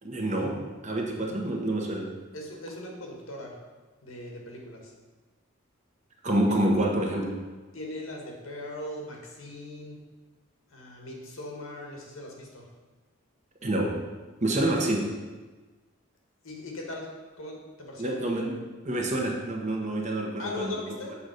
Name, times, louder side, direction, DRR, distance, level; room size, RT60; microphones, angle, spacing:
voice 1, 0.0-2.1 6.2-7.4 13.6-14.1 14.4-15.1 18.0-20.7, right 1 dB, 35° right, 0 dB, 1.1 m, -27 dB
voice 2, 2.3-3.6 4.0-4.9 6.4-6.5 7.7-10.0 10.7-12.7 14.5-14.7 16.4-17.1 17.4-18.2 20.4-21.2, left 1 dB, 80° left, 0 dB, 1.7 m, -39 dB
7.2 x 4.0 x 6.4 m, 1.3 s
head